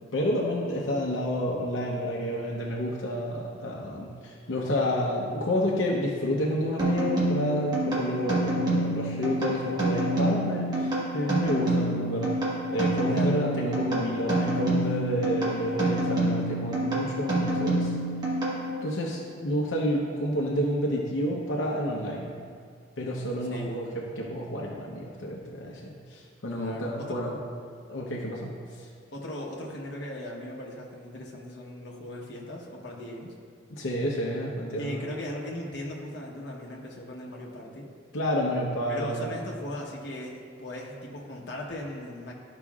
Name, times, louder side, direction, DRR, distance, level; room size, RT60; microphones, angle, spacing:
voice 1, 0.1-12.3 12.7-17.9 18.8-22.4 23.0-23.9 24.2-27.3 27.9-28.5 33.8-35.0 38.1-39.3, equal, 85° left, -3 dB, 0.8 m, -29 dB
sound 1, 6.8-19.0, right 1 dB, 20° right, 1.3 m, -27 dB
voice 2, 13.1-13.5 15.8-16.1 23.5-23.9 26.5-27.2 29.1-33.3 34.8-37.9 38.9-42.3, left 1 dB, 65° left, -2 dB, 1.1 m, -38 dB
12.5 x 5.0 x 2.4 m, 2.2 s
head